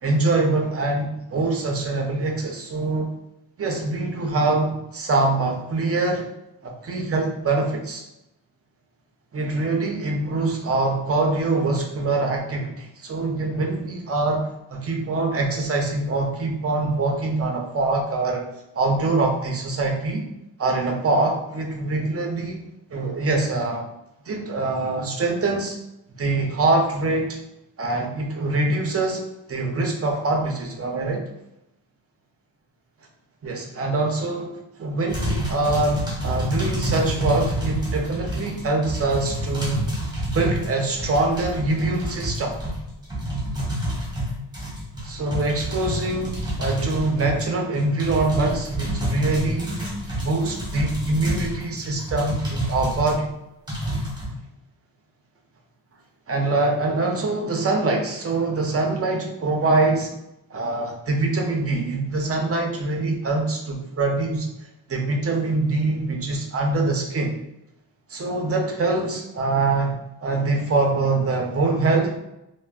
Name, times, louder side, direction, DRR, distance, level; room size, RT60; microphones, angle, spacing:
voice 1, 0.0-3.1 3.6-6.2 6.6-8.0 9.3-18.4 18.7-20.3 20.6-22.6 22.9-23.9 24.3-25.8 26.2-27.4 27.8-29.2 29.5-31.2 33.4-39.8 40.3-42.6 45.0-49.8 50.2-53.3 56.3-60.1 60.5-64.5 64.9-67.3 68.1-72.1, right 3 dB, 35° right, 1 dB, 0.5 m, -24 dB
sound 1, 35.1-53.2 53.7-54.3, equal, 10° right, 0.9 m, -28 dB
3.3 x 2.1 x 2.3 m, 0.86 s
wide cardioid pair, 110°, 41 cm